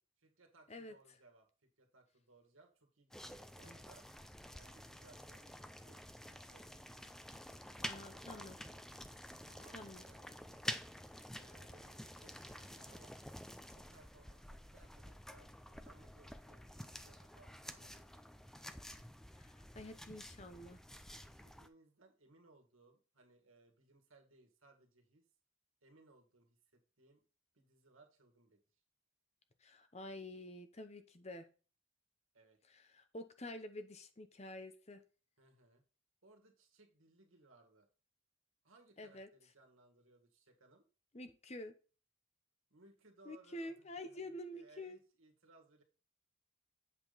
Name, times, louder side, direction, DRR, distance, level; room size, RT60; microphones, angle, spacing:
voice 1, 0.2-4.1 4.5-6.9 7.7-8.8 9.4-10.6 11.4-13.2 13.7-18.5 21.1-25.3 25.8-27.2 27.5-28.8 32.3-32.6 35.4-35.8 36.2-37.9 38.6-40.9 42.7-45.8, right 2 dB, 85° right, 3 dB, 2.0 m, -66 dB
sound 1, 3.1-21.7, equal, ahead, 0.4 m, -50 dB
voice 2, 7.8-8.6 9.7-10.0 19.4-20.8 29.6-31.5 32.7-35.0 39.0-39.3 41.1-41.7 43.2-45.0, left 1 dB, 30° left, 9 dB, 0.8 m, -48 dB
8.3 x 5.2 x 4.1 m, 0.35 s
head